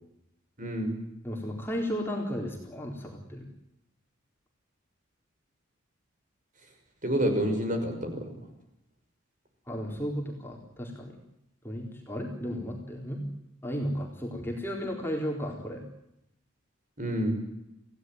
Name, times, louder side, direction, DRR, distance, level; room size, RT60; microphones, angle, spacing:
voice 1, 0.6-1.0 7.0-8.2 17.0-17.3, equal, 40° right, 5 dB, 6.0 m, -28 dB
voice 2, 1.2-3.5 9.7-11.2 11.6-13.2 13.6-15.8, equal, 10° left, 0 dB, 4.0 m, -34 dB
27.5 x 17.0 x 9.5 m, 0.85 s
head